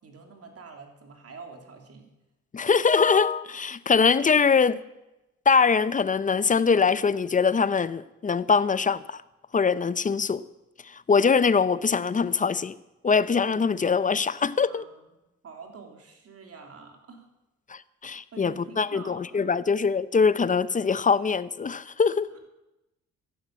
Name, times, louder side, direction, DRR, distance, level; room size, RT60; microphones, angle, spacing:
voice 1, 0.0-2.1 14.7-15.0 15.4-17.3 18.3-19.6 22.3-22.5, right 5 dB, 50° right, 3.3 m, -46 dB
voice 2, 2.5-4.8 5.5-9.2 9.5-10.4 10.9-12.7 13.0-14.8 17.7-22.3, left 5 dB, 25° left, 0.6 m, -23 dB
14.5 x 11.0 x 7.5 m
cardioid pair, 90°, 30 cm